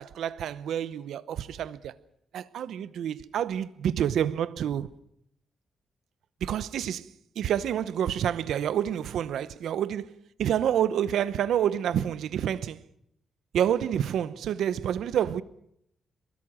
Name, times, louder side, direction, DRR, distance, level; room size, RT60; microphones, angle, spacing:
voice 1, 0.0-2.0 2.3-4.9 6.4-12.8 13.5-15.4, right 9 dB, 85° right, 0.9 m, -28 dB
23.0 x 21.0 x 6.3 m
cardioid pair, 115°, 0 cm